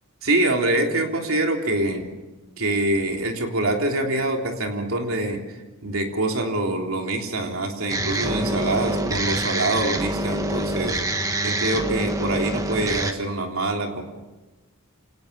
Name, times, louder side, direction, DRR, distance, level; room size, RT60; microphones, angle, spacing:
voice 1, 0.2-2.1 2.6-5.4 5.8-11.0 11.4-14.0, right 2 dB, 70° right, 2 dB, 3.5 m, -25 dB
sound 1, 7.9-13.1, right 1 dB, 15° right, 1.4 m, -26 dB
27.5 x 18.5 x 6.9 m, 1.1 s
head